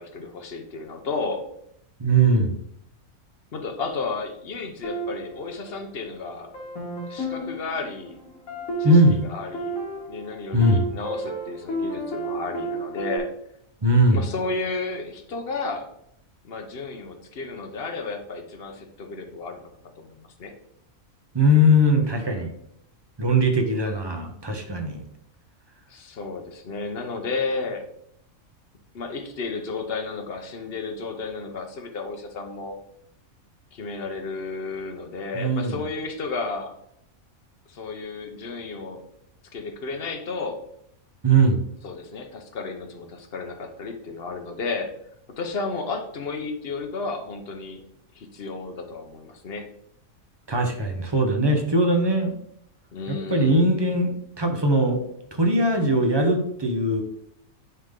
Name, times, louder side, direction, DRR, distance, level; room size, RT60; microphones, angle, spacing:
voice 1, 0.0-1.5 3.5-6.5 7.1-8.2 8.8-8.9 9.2-9.8 10.1-13.3 14.1-15.9 16.4-19.6 20.0-20.5 25.9-27.8 28.9-32.8 33.7-36.7 37.7-39.0 39.5-40.6 41.8-44.9 45.4-47.8 48.1-49.7 52.9-53.7, left 4 dB, 50° left, 5 dB, 1.0 m, -32 dB
voice 2, 2.0-2.6 8.8-9.2 10.5-10.8 13.8-14.2 21.3-22.5 23.2-25.0 35.3-35.8 41.2-41.6 50.5-52.3 53.1-55.0 55.3-57.0, right 1 dB, 25° right, 4 dB, 0.8 m, -20 dB
sound 1, 4.8-6.1 6.5-13.2, right 2 dB, 75° left, 2.0 m, -32 dB
9.4 x 3.6 x 3.7 m, 0.74 s
omnidirectional pair, 1.4 m